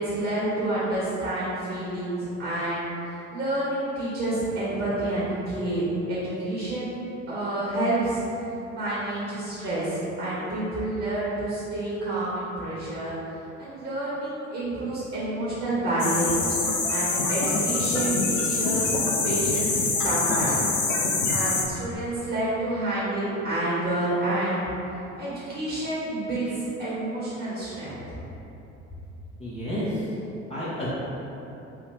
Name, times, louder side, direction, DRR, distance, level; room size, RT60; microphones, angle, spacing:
voice 1, 0.0-6.9 7.3-8.2 8.7-13.1 13.6-16.5 16.9-19.0 19.2-20.7 21.3-24.7 25.2-28.0, right 1 dB, 35° right, -10 dB, 1.2 m, -29 dB
sound 1, 16.0-21.6, left 3 dB, 80° left, 0.5 m, -25 dB
voice 2, 29.4-30.1 30.5-30.9, equal, 15° left, -11 dB, 0.7 m, -30 dB
3.4 x 2.7 x 3.0 m, 3.0 s
figure-of-eight pair, 60°, 38 cm